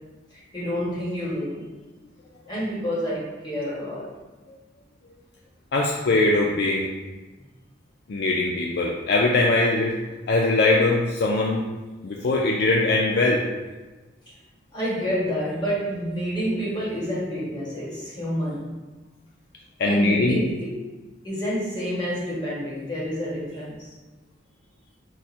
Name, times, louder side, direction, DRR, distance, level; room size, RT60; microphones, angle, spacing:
voice 1, 0.3-1.6 2.5-4.1 14.7-18.7 19.8-20.6 21.2-23.9, equal, 25° left, -8 dB, 1.3 m, -28 dB
voice 2, 5.7-6.9 8.1-10.0 10.3-11.6 12.0-13.4 19.8-20.4, left 2 dB, 55° left, -1 dB, 0.4 m, -21 dB
4.7 x 2.1 x 4.2 m, 1.2 s
head